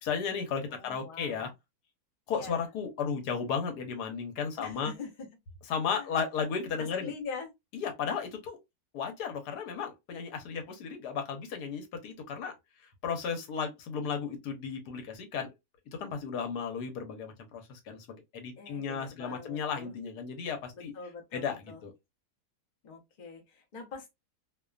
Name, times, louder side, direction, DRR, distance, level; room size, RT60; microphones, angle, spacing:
voice 1, 0.0-1.5 2.3-4.9 5.7-7.1 7.7-8.6 8.9-12.5 12.8-15.5 16.0-20.9 21.3-21.9, left 6 dB, 85° left, 1.3 m, -34 dB
voice 2, 0.7-1.5 2.3-2.6 4.6-5.1 5.9-6.1 6.8-7.5 18.6-20.0 20.9-21.8 22.8-24.1, left 5 dB, 50° left, 0.5 m, -44 dB
2.7 x 2.2 x 2.3 m
omnidirectional pair, 1.7 m